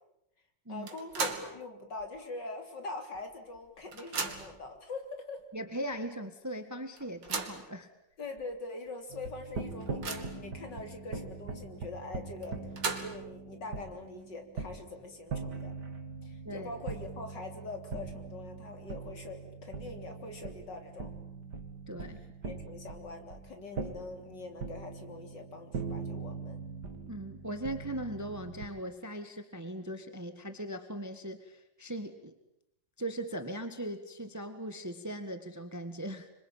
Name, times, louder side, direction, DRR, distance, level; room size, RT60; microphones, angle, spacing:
voice 1, 0.7-5.4 8.2-12.6 13.0-15.7 16.2-21.1 22.4-26.7, left 3 dB, 70° left, 5 dB, 4.1 m, -43 dB
sound 1, 0.9-1.6 2.0-2.1 3.1-3.2 3.5-4.6 5.4-5.5 5.9-6.0 7.0-7.7 8.4-8.5 8.9-9.0 9.4-10.5 12.4-13.3, right 4 dB, 85° right, 3.1 m, -37 dB
voice 2, 5.5-7.9 16.4-16.7 21.9-22.2 27.1-32.3 33.0-36.3, right 1 dB, 10° right, 8 dB, 1.6 m, -39 dB
sound 2, 9.1-28.7, right 4 dB, 65° right, 2.9 m, -42 dB
27.0 x 24.5 x 8.9 m, 0.81 s
omnidirectional pair, 2.0 m